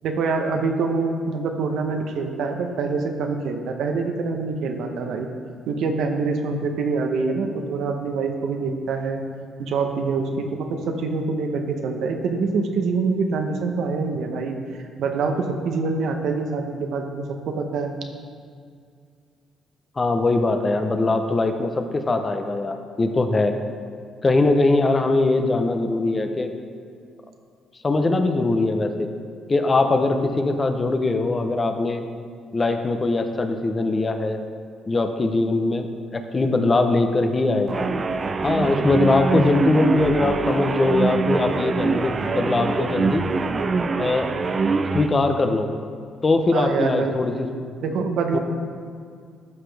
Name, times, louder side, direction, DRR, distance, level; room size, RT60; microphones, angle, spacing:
voice 1, 0.0-5.3 5.7-9.2 9.6-18.0 46.5-47.2 47.8-48.4, right 4 dB, 75° right, 4 dB, 0.9 m, -25 dB
voice 2, 20.0-23.6 24.2-26.5 27.8-29.1 29.5-32.0 32.5-34.4 34.9-35.9 36.1-37.8 38.4-43.2 44.0-44.3 44.9-45.7 46.2-47.5 48.3-48.4, left 2 dB, 30° left, 6 dB, 0.8 m, -21 dB
sound 1, 37.7-45.1, right 4 dB, 40° right, 0.5 m, -24 dB
13.0 x 6.0 x 3.4 m, 2.2 s
supercardioid pair, 75°, 0 cm